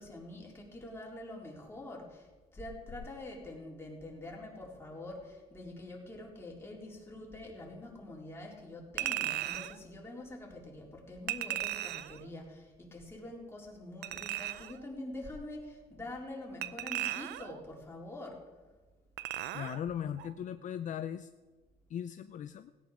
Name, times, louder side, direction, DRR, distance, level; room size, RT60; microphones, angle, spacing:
voice 1, 0.0-2.3 2.5-18.4, left 1 dB, 15° left, -2 dB, 4.0 m, -45 dB
Chink clink, 9.0-9.8 11.3-12.2 14.0-14.8 16.6-17.6 19.2-19.8 20.2-20.3, right 14 dB, 80° right, 0.6 m, -36 dB
voice 2, 19.5-21.3 21.9-22.7, left 9 dB, 50° left, 10 dB, 0.6 m, -38 dB
17.0 x 9.3 x 6.4 m, 1.3 s
cardioid pair, 110°, 17 cm